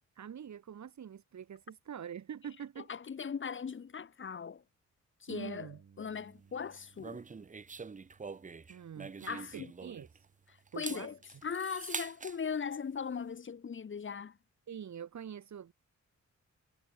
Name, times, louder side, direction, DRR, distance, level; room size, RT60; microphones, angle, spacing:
voice 1, 0.2-2.9 5.3-5.8 8.7-10.2 10.7-11.1 14.7-15.7, right 8 dB, 70° right, 4.3 m, -45 dB
voice 2, 2.8-4.6 5.2-7.2 9.3-9.7 10.5-14.4, left 6 dB, 40° left, 1.7 m, -39 dB
Bass guitar, 5.3-11.5, right 6 dB, 50° right, 7.9 m, -65 dB
sound 1, 7.0-10.3 10.7-12.4, right 4 dB, 25° right, 1.0 m, -44 dB
wide cardioid pair, 145°, 29 cm